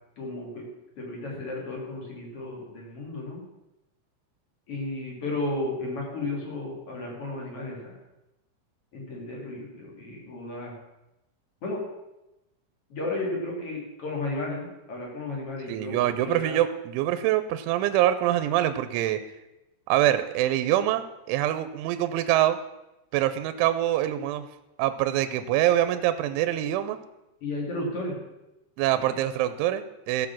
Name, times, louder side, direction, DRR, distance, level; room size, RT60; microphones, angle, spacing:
voice 1, 0.2-0.7 1.0-3.4 4.7-8.0 8.9-10.7 11.6-11.8 12.9-16.6 27.4-28.2 28.9-29.1, left 2 dB, 35° left, -2 dB, 2.9 m, -33 dB
voice 2, 15.7-19.2 19.9-22.6 23.1-24.5 24.8-27.0 28.8-30.3, right 13 dB, 85° right, 11 dB, 2.9 m, -25 dB
15.0 x 7.2 x 6.0 m, 0.95 s
omnidirectional pair, 5.7 m